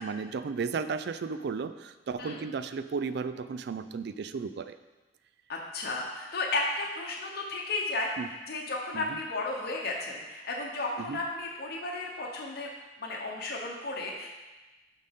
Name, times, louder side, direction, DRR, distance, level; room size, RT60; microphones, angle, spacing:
voice 1, 0.0-4.8 8.2-8.3 8.9-9.2 11.0-11.2, right 5 dB, 60° right, 12 dB, 0.4 m, -34 dB
voice 2, 5.5-8.1 8.5-12.7 13.0-14.3, left 2 dB, 55° left, -1 dB, 0.8 m, -33 dB
11.5 x 4.0 x 3.6 m, 1.2 s
head